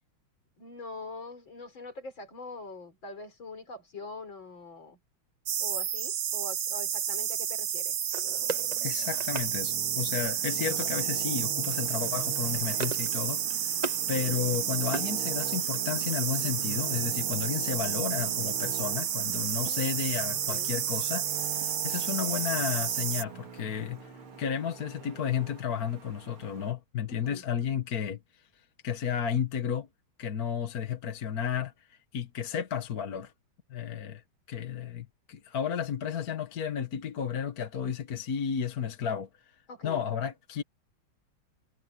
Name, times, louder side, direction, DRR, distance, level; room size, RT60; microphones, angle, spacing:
voice 1, 0.6-5.0 5.6-8.0 19.5-20.0 20.3-20.7 27.1-27.5 39.7-40.1, left 3 dB, 65° left, 5.1 m, -43 dB
sound 1, 5.5-23.2, right 9 dB, 70° right, 2.0 m, -31 dB
sound 2, 8.1-9.5 10.8-11.2 11.5-11.8 12.1-13.1 13.4-14.0 14.4-15.7, right 4 dB, 25° right, 1.0 m, -39 dB
Traffic noise roadway noise, 8.2-26.7, right 6 dB, 90° right, 3.2 m, -44 dB
voice 2, 8.8-13.8 14.1-24.1 24.4-28.2 28.8-29.9 30.2-33.3 33.7-34.2 34.5-39.3 39.8-40.6, left 8 dB, 50° left, 1.8 m, -33 dB
omnidirectional pair, 2.3 m